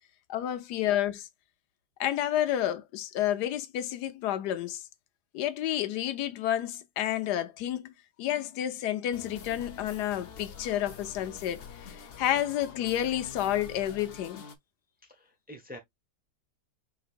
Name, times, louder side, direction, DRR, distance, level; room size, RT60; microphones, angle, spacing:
voice 1, 0.3-1.3 2.0-4.8 5.3-11.6 11.9-14.4, left 12 dB, 85° left, 1.3 m, -30 dB
sound 1, 9.1-14.6, left 6 dB, 55° left, 0.6 m, -46 dB
voice 2, 15.0-15.8, equal, 5° right, 0.9 m, -46 dB
4.9 x 4.0 x 2.4 m
omnidirectional pair, 1.7 m